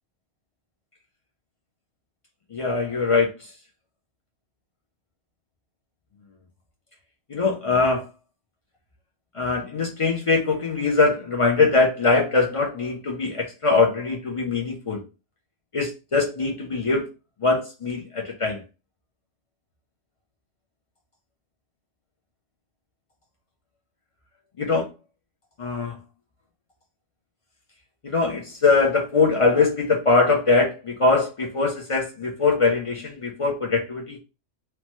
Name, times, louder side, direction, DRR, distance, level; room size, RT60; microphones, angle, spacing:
voice 1, 2.5-3.3 7.3-8.1 9.3-15.0 15.7-17.1 17.4-18.6 24.6-24.9 25.6-26.0 28.0-34.2, left 3 dB, 50° left, 1 dB, 0.4 m, -22 dB
2.9 x 2.2 x 3.0 m, 0.29 s
omnidirectional pair, 1.3 m